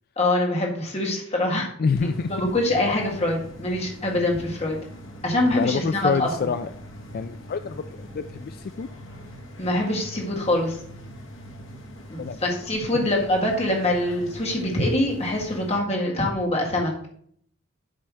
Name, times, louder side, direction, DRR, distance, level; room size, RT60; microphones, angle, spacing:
voice 1, 0.2-1.7 2.0-4.8 5.2-6.3 9.6-10.8 12.1-16.9, left 1 dB, 30° left, -1 dB, 1.8 m, -24 dB
voice 2, 1.8-2.3 5.5-6.7 7.1-8.9 12.2-12.4, left 5 dB, 50° left, 10 dB, 0.3 m, -27 dB
sound 1, 2.0-15.8, equal, 70° left, 1.4 m, -42 dB
8.6 x 3.3 x 6.2 m, 0.62 s
head